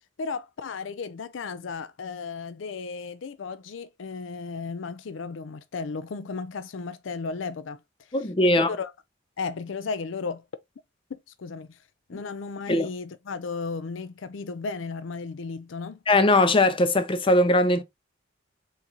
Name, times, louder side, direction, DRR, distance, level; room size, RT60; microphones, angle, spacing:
voice 1, 0.2-7.8 8.4-8.9 9.4-10.4 11.1-11.8 12.1-16.0, left 4 dB, 70° left, 0.5 m, -34 dB
voice 2, 8.1-8.8 12.1-12.2 12.7-12.9 16.1-17.8, left 2 dB, 25° left, 0.6 m, -20 dB
4.1 x 3.6 x 2.9 m
head